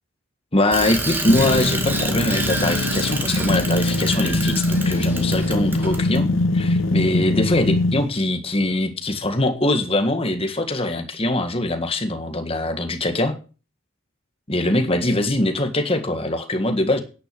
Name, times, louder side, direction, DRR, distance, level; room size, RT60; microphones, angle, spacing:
voice 1, 0.5-6.3 6.5-13.4 14.5-17.0, left 1 dB, 25° left, 7 dB, 1.7 m, -22 dB
Bicycle, 0.7-6.2, right 2 dB, 10° right, 2.0 m, -28 dB
sound 1, 1.3-8.0, left 2 dB, 70° left, 1.1 m, -22 dB
10.0 x 9.9 x 7.0 m, 0.35 s
head